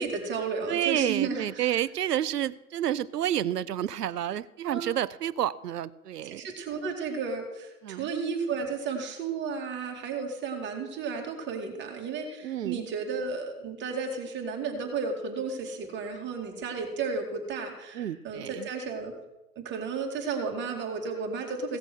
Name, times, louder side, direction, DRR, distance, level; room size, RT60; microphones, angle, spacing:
voice 1, 0.0-1.7 4.6-4.8 6.3-19.1 19.6-21.8, right 5 dB, 25° right, 2 dB, 2.4 m, -33 dB
voice 2, 0.7-6.4 7.8-8.1 12.4-12.9 17.9-18.7, right 11 dB, 85° right, 19 dB, 0.6 m, -30 dB
16.5 x 6.8 x 6.3 m, 1.0 s
hypercardioid pair, 115°, 46 cm